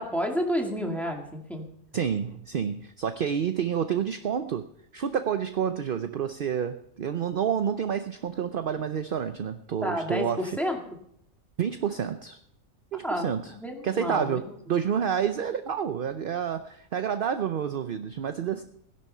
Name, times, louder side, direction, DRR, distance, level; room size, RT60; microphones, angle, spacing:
voice 1, 0.0-1.6 9.8-10.8 13.0-13.3 13.6-14.4, equal, ahead, 1 dB, 2.1 m, -30 dB
voice 2, 1.9-4.7 4.9-10.6 11.6-12.4 12.9-13.5 13.8-14.4 14.7-18.6, right 8 dB, 50° right, 9 dB, 0.7 m, -29 dB
17.0 x 11.0 x 5.5 m, 0.69 s
omnidirectional pair, 1.5 m